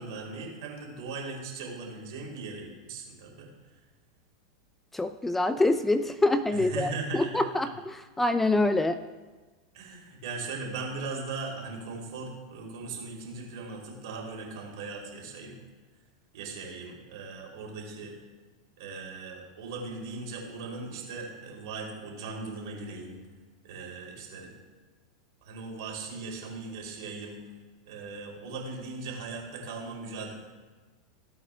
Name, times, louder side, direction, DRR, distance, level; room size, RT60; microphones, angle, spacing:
voice 1, 0.0-3.5 6.5-7.4 9.7-15.6 16.3-18.1 18.8-23.2 23.6-24.5 25.4-27.4 27.8-30.3, right 3 dB, 60° right, -1 dB, 3.2 m, -38 dB
voice 2, 4.9-9.0, left 2 dB, 10° left, 10 dB, 0.4 m, -26 dB
17.0 x 8.3 x 2.3 m, 1.3 s
hypercardioid pair, 90°, 3 cm